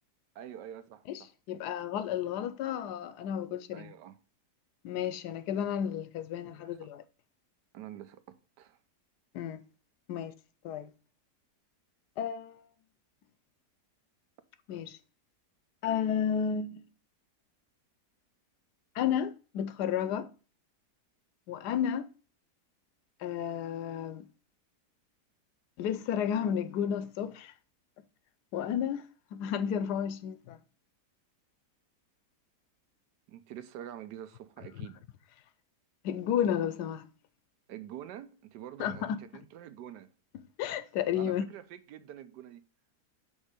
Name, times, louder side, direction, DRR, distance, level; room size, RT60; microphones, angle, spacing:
voice 1, 0.3-1.8 3.7-4.2 6.5-6.6 7.7-8.8 33.3-35.0 37.7-40.1 41.1-42.6, right 11 dB, 85° right, 1.3 m, -46 dB
voice 2, 1.5-3.9 4.8-7.0 9.3-9.6 10.1-10.3 10.6-10.9 12.2-12.7 14.7-15.0 15.8-16.8 18.9-20.3 21.5-22.1 23.2-24.3 25.8-27.5 28.5-29.1 29.3-30.6 34.8-34.9 36.0-37.1 38.8-39.2 40.6-41.5, left 9 dB, 80° left, 1.1 m, -32 dB
5.3 x 3.5 x 5.0 m
omnidirectional pair, 1.8 m